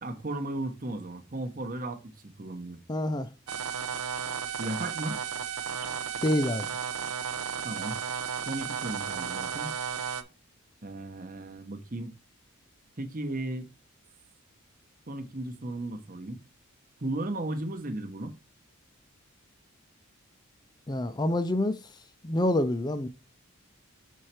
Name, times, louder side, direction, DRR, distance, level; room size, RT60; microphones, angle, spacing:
voice 1, 0.0-2.8 4.6-5.2 7.6-8.0 8.5-9.7 10.8-12.1 13.0-13.7 15.1-16.4 17.0-18.3, right 1 dB, 40° right, 1.0 m, -35 dB
voice 2, 2.9-3.3 6.2-6.7 20.9-21.8 22.2-23.1, left 1 dB, 20° left, 0.5 m, -27 dB
sound 1, 3.5-10.2, right 7 dB, 85° right, 0.7 m, -34 dB
6.4 x 4.5 x 4.3 m
head